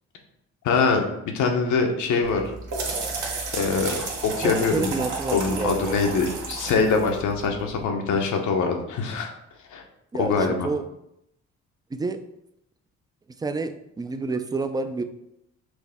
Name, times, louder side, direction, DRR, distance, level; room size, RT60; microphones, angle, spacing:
voice 1, 0.6-1.0 1.3-2.5 3.5-4.0 4.2-5.0 5.3-9.3 9.7-9.8 10.1-10.7, left 4 dB, 75° left, 3 dB, 0.8 m, -23 dB
sound 1, 2.2-7.8, right 4 dB, 75° right, 1.0 m, -32 dB
voice 2, 4.4-6.0 10.1-10.8 11.9-12.2 13.4-15.0, right 3 dB, 15° right, 8 dB, 0.3 m, -29 dB
6.2 x 2.1 x 3.4 m, 0.80 s
cardioid pair, 90°, 30 cm